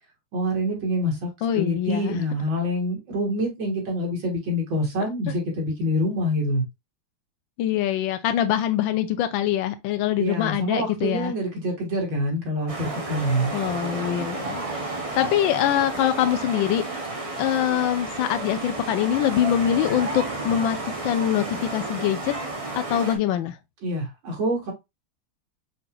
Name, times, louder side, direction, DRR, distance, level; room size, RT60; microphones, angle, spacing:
voice 1, 0.3-1.3 1.6-6.6 10.2-13.5 23.8-24.7, equal, 70° right, 2.4 m, -26 dB
voice 2, 1.4-2.2 7.6-11.3 13.5-16.8 17.4-20.8 21.0-22.3 22.9-23.6, left 11 dB, 75° left, 1.4 m, -24 dB
sound 1, 12.7-23.2, right 2 dB, 30° right, 0.7 m, -32 dB
5.6 x 4.1 x 2.3 m
omnidirectional pair, 2.2 m